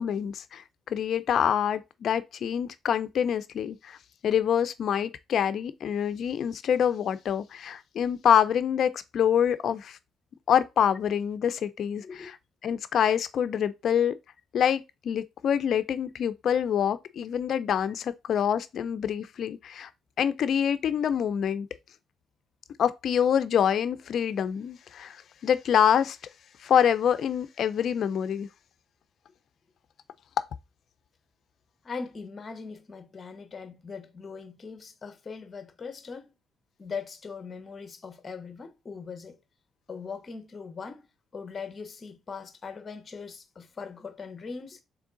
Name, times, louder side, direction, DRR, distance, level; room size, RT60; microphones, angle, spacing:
voice 1, 0.0-4.0 4.2-10.0 10.5-12.3 12.6-14.2 14.5-19.9 20.2-21.7 22.8-26.2 26.6-28.5, left 8 dB, 65° left, 0.4 m, -26 dB
voice 2, 12.0-12.3 31.8-36.3 36.8-39.4 39.9-41.1 41.3-44.8, left 5 dB, 35° left, 0.7 m, -40 dB
3.6 x 3.1 x 3.8 m
cardioid pair, 90°, 0 cm